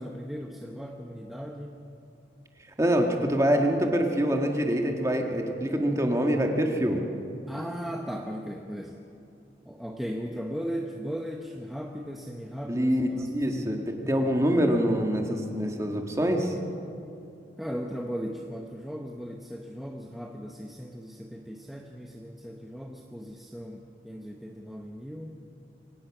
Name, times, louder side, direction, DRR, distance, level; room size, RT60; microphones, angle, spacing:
voice 1, 0.0-1.8 7.5-9.0 9.7-12.9 13.2-13.5 13.7-13.8 17.6-25.4, equal, ahead, 1 dB, 0.9 m, -37 dB
voice 2, 2.8-7.0 12.6-16.5, equal, 15° right, 2 dB, 1.8 m, -25 dB
24.0 x 18.5 x 6.1 m, 2.6 s
head